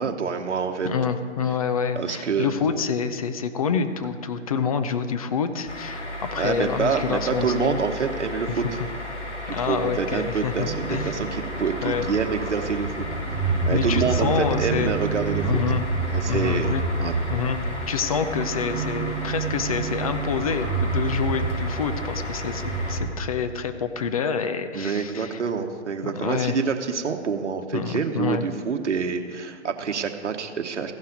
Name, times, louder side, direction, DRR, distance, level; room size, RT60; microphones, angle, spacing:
voice 1, 0.0-0.9 2.0-2.5 6.3-8.8 9.5-13.0 13.6-15.4 16.1-16.7 17.0-17.1 24.7-30.9, right 6 dB, 80° right, 5 dB, 1.1 m, -27 dB
voice 2, 0.8-7.8 8.5-8.7 9.5-11.2 11.8-12.1 13.7-14.9 15.4-15.8 16.3-16.8 17.3-17.6 17.9-25.4 26.0-26.6 27.7-28.4, left 6 dB, 30° left, 9 dB, 0.5 m, -27 dB
sound 1, 5.7-23.0, left 1 dB, 80° left, 2.4 m, -34 dB
sound 2, 10.6-23.1, right 4 dB, 5° left, 1.9 m, -29 dB
15.5 x 5.7 x 5.1 m, 2.1 s
hypercardioid pair, 145°, 35 cm